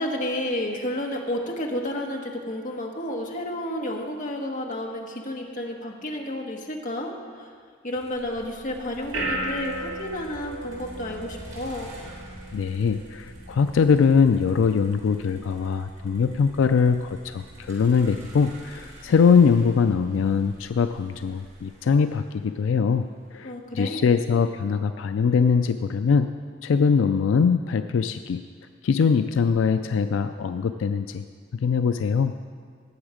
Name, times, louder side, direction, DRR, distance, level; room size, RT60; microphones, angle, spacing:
voice 1, 0.0-7.1 7.4-7.5 7.8-11.9 23.4-24.0, left 1 dB, 40° left, 1 dB, 1.3 m, -31 dB
Motor vehicle (road), 7.9-24.1, equal, 40° right, 3.4 m, -48 dB
sound 1, 8.1-21.6, right 1 dB, 65° right, 3.1 m, -39 dB
voice 2, 12.5-23.1 23.3-26.3 26.6-28.4 28.8-31.2 31.6-32.3, left 5 dB, 80° left, 9 dB, 0.4 m, -22 dB
18.0 x 7.1 x 5.0 m, 2.1 s
head